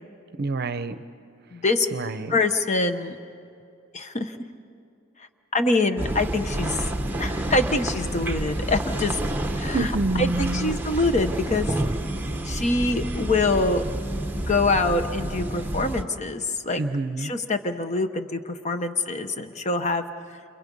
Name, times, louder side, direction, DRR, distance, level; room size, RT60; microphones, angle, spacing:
voice 1, 0.4-1.0 1.9-2.3 9.7-10.8 16.8-17.3, right 2 dB, 50° right, 11 dB, 0.7 m, -27 dB
voice 2, 1.5-1.9 2.3-3.2 3.9-4.4 5.5-6.8 7.2-9.2 9.6-9.9 10.2-11.7 12.4-13.8 14.3-16.8 17.2-20.1, left 2 dB, 35° left, 8 dB, 1.0 m, -25 dB
sound 1, 6.0-16.0, right 1 dB, 10° right, 1.0 m, -29 dB
29.5 x 27.5 x 5.5 m, 2.5 s
head